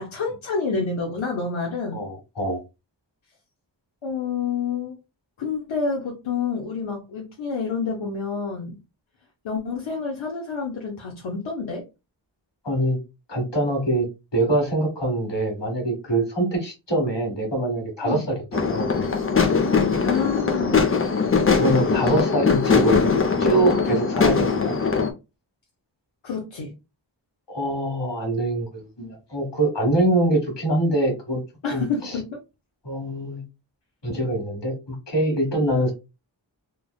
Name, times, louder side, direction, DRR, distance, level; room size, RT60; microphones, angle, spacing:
voice 1, 0.0-2.1 4.0-5.0 5.4-8.8 9.4-11.8 18.0-18.3 20.0-20.9 26.2-26.7 31.6-32.4, left 5 dB, 85° left, 0.7 m, -28 dB
voice 2, 1.9-2.6 12.6-13.0 13.3-14.1 14.3-19.1 21.5-23.1 23.4-24.7 27.5-31.4 31.7-32.2 32.8-33.4 34.0-35.9, right 1 dB, 60° left, 1.5 m, -24 dB
sound 1, 18.5-25.1, left 5 dB, 30° left, 0.5 m, -21 dB
3.3 x 2.0 x 2.3 m
wide cardioid pair, 65°, 46 cm